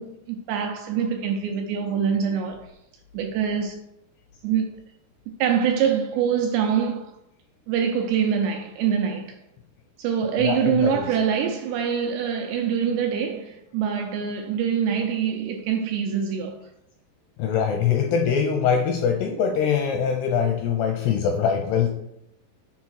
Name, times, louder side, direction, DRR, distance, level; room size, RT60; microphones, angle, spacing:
voice 1, 0.0-2.7 3.1-3.8 4.4-4.7 5.4-7.2 7.7-9.4 10.0-16.6, right 7 dB, 80° right, 2.5 m, -24 dB
voice 2, 10.4-11.0 17.4-21.9, left 7 dB, 85° left, 2.3 m, -23 dB
7.2 x 4.3 x 6.3 m
omnidirectional pair, 5.5 m